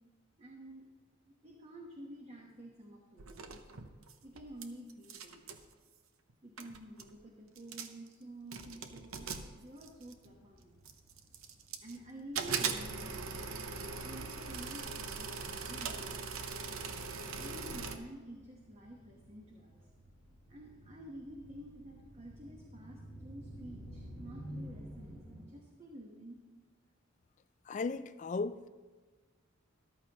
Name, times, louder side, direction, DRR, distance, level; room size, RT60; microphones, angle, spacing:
voice 1, 0.4-0.9 1.2-3.5 4.2-5.4 6.4-10.7 11.8-13.5 14.0-16.4 17.4-19.8 20.5-26.4, right 1 dB, 30° right, 1.1 m, -50 dB
sound 1, 3.2-4.6 4.9-5.6 6.3-6.4 6.6-7.1 7.6-8.1 8.5-10.3 10.8-12.0 12.3-18.0, right 5 dB, 90° right, 0.8 m, -40 dB
sound 2, 9.8-25.4, equal, 55° right, 3.7 m, -53 dB
voice 2, 27.7-28.7, left 4 dB, 35° left, 0.3 m, -36 dB
13.5 x 12.0 x 2.9 m
head